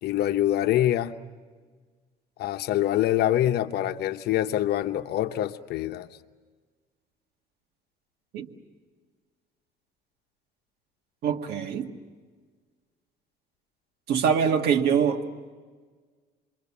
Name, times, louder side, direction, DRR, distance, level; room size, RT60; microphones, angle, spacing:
voice 1, 0.0-1.2 2.4-6.1, left 13 dB, 70° left, 0.9 m, -25 dB
voice 2, 11.2-11.9 14.1-15.2, right 7 dB, 70° right, 1.7 m, -24 dB
28.5 x 23.5 x 7.2 m
cardioid pair, 110°, 17 cm